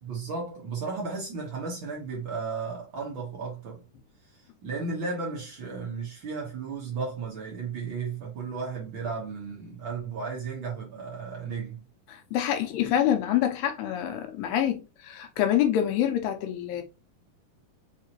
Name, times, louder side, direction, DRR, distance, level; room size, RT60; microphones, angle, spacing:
voice 1, 0.0-3.8 4.3-11.8, right 4 dB, 60° right, 1.2 m, -34 dB
voice 2, 12.1-16.8, left 10 dB, 85° left, 2.5 m, -26 dB
5.7 x 2.7 x 2.9 m
omnidirectional pair, 4.0 m